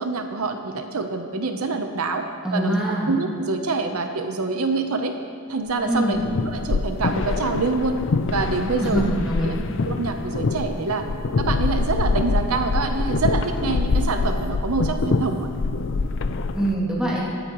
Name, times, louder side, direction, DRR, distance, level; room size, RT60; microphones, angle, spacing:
voice 1, 0.0-5.1 5.5-6.2 6.4-8.0 8.3-9.1 9.4-9.6 9.8-11.1 11.4-15.5, right 3 dB, 80° right, 6 dB, 0.8 m, -26 dB
voice 2, 2.4-3.1 5.8-6.2 8.8-9.6 16.5-17.2, right 1 dB, 5° right, -7 dB, 2.5 m, -23 dB
sound 1, 6.0-16.7, left 3 dB, 55° left, 0.5 m, -25 dB
18.5 x 13.0 x 3.1 m, 2.2 s
head